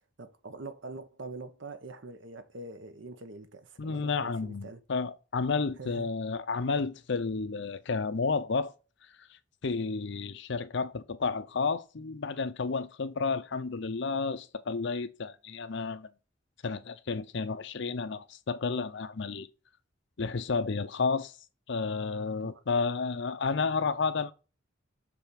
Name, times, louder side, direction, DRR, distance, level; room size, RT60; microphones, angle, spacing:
voice 1, 0.2-4.8 5.8-6.1 22.4-22.8, right 3 dB, 70° right, 0.9 m, -44 dB
voice 2, 3.8-8.7 9.6-16.1 16.6-19.5 20.2-21.3 21.7-24.3, left 4 dB, 65° left, 0.6 m, -31 dB
6.9 x 3.4 x 5.1 m
head